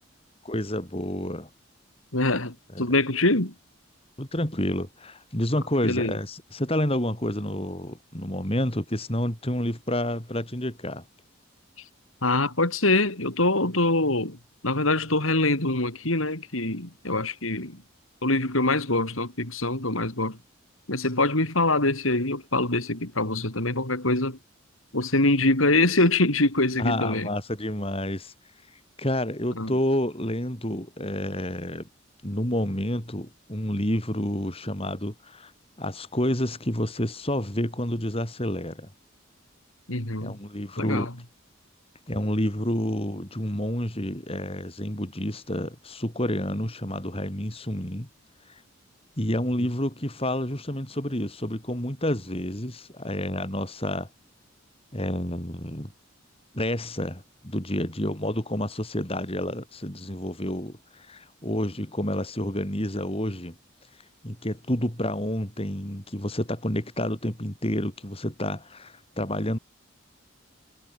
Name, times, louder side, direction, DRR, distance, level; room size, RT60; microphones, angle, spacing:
voice 1, 0.4-1.5 2.7-2.9 4.2-11.0 26.8-28.3 28.7-31.9 32.2-35.5 35.8-38.9 40.2-41.1 42.1-48.1 48.5-48.6 49.2-54.1 54.9-55.9 56.5-63.5 64.2-69.6, left 1 dB, 30° left, 5.0 m, -29 dB
voice 2, 2.1-3.5 5.8-6.2 12.2-14.4 14.6-17.8 18.2-20.4 20.9-24.4 24.9-27.3 29.6-29.7 39.9-40.4 40.8-41.1, left 2 dB, 85° left, 5.4 m, -24 dB
head